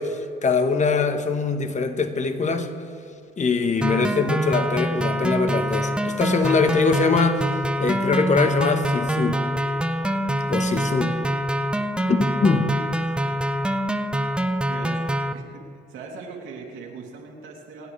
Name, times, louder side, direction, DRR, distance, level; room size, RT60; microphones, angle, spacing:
voice 1, 0.0-2.7 3.4-7.5 7.8-9.4 10.5-11.2 12.1-12.7, left 4 dB, 35° left, 7 dB, 1.3 m, -22 dB
sound 1, 3.8-15.3, right 1 dB, 5° right, 0.8 m, -25 dB
voice 2, 14.7-15.0 15.3-15.6 15.9-17.9, right 5 dB, 90° right, -1 dB, 2.8 m, -40 dB
29.0 x 9.9 x 3.4 m, 2.7 s
cardioid pair, 90°, 20 cm